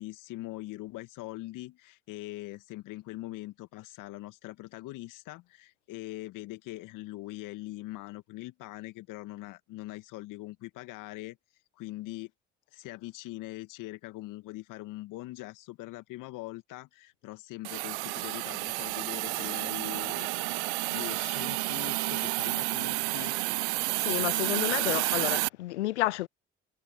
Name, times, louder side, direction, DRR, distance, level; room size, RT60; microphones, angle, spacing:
voice 1, 0.0-11.4 11.8-12.3 12.7-23.5, left 18 dB, 65° left, 2.4 m, -42 dB
Hiss, 17.6-25.5, right 23 dB, 75° right, 0.7 m, -30 dB
voice 2, 24.0-26.3, left 17 dB, 85° left, 0.5 m, -30 dB
figure-of-eight pair, 50°, 34 cm